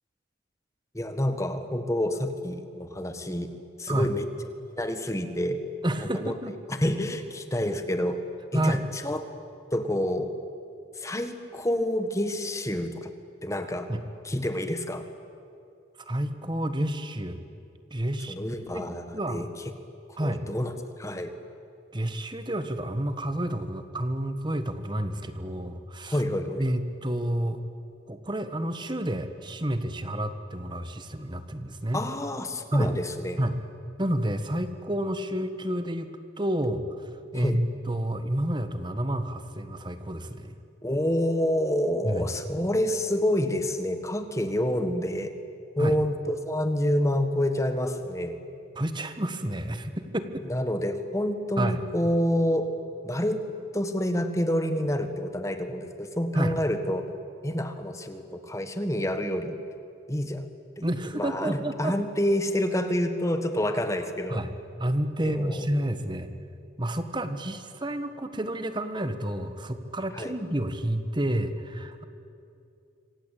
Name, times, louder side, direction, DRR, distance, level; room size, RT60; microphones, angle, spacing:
voice 1, 0.9-3.5 3.8-4.2 4.8-5.6 6.0-6.3 6.7-8.2 8.5-9.2 9.7-10.3 11.0-13.1 13.4-13.9 14.2-15.0 18.3-19.4 20.2-21.3 26.1-26.6 31.9-33.4 37.3-37.6 40.8-45.3 45.8-48.3 50.5-52.7 53.0-53.4 53.7-57.0 57.4-59.6 60.1-60.5 60.8-60.9 61.1-64.4 65.2-65.7 70.1-70.4, left 1 dB, 15° left, 8 dB, 1.6 m, -28 dB
voice 2, 5.8-6.5 8.5-8.8 13.9-14.0 16.0-17.4 17.9-18.3 18.7-19.5 20.2-20.4 21.9-26.2 26.6-27.6 28.1-32.0 32.7-32.9 33.4-33.6 34.0-36.1 36.4-40.5 42.0-42.3 45.8-45.9 48.7-50.4 51.6-51.8 56.3-56.6 60.8-61.9 64.3-64.5 64.8-66.3 66.8-72.0, right 1 dB, 25° right, 9 dB, 1.4 m, -30 dB
26.0 x 26.0 x 8.5 m, 2.6 s
head